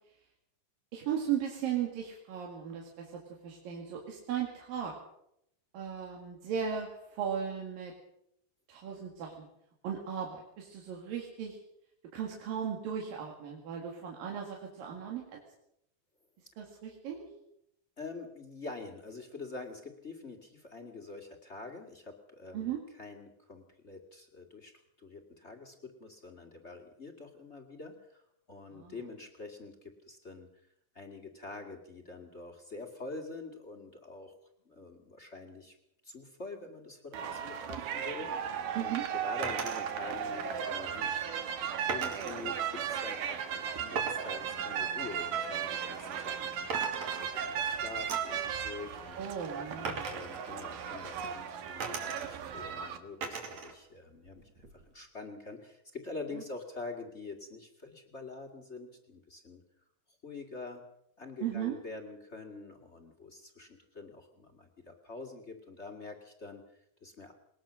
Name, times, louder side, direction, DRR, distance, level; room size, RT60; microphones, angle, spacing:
voice 1, 0.9-4.9 5.7-7.9 8.7-9.5 9.8-11.6 12.1-15.4 16.6-17.3 22.5-22.8 28.7-29.0 38.8-39.0 49.2-50.1 61.4-61.8, right 8 dB, 90° right, 0 dB, 3.8 m, -36 dB
voice 2, 18.0-24.7 25.0-30.5 30.9-34.3 34.6-35.8 36.0-41.6 41.9-49.2 49.7-59.6 60.2-60.8 61.2-67.3, left 3 dB, 25° left, 5 dB, 1.7 m, -46 dB
sound 1, 37.1-53.0, right 8 dB, 75° right, 3.1 m, -36 dB
sound 2, 39.4-39.9 41.9-42.5 44.0-46.4 46.7-47.7 48.1-48.4 49.8-51.3 51.8-52.5 53.2-53.7 54.1-54.9, right 5 dB, 55° right, 3.6 m, -40 dB
21.0 x 19.5 x 6.3 m, 0.78 s
omnidirectional pair, 3.9 m